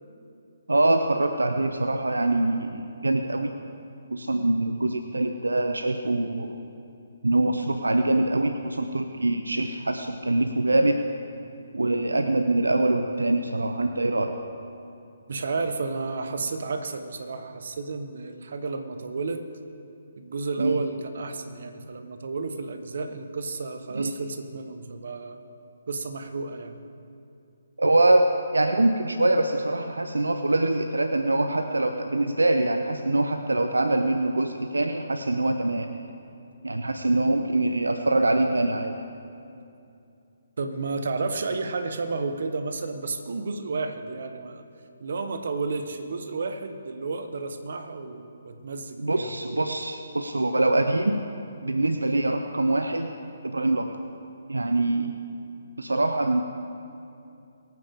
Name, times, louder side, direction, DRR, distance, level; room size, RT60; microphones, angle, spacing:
voice 1, 0.7-3.5 4.1-6.6 7.2-11.0 11.7-14.4 20.6-20.8 23.9-24.1 27.8-35.9 36.6-38.9 49.0-51.2 51.6-53.1 53.4-54.0 54.5-55.1 55.8-56.4, right 2 dB, 90° right, 7 dB, 0.7 m, -24 dB
voice 2, 15.3-19.4 20.2-25.4 25.9-26.8 40.6-44.6 45.0-49.2, right 3 dB, 65° right, 7 dB, 1.1 m, -32 dB
22.5 x 9.3 x 3.7 m, 2.7 s
figure-of-eight pair, 140°, 0 cm